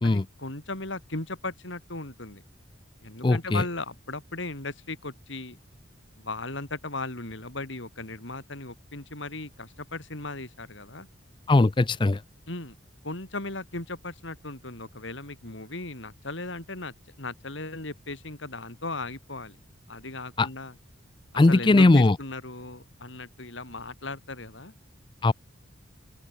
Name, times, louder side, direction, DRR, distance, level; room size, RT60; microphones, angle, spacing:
voice 1, 0.0-2.4 3.0-5.6 6.2-11.1 12.5-12.7 13.0-19.6 19.9-20.7 21.5-24.7, left 2 dB, 65° left, 3.8 m, -37 dB
voice 2, 3.2-3.6 11.5-12.2 20.4-20.5 21.4-22.1 25.2-25.3, left 2 dB, 25° left, 0.4 m, -19 dB
head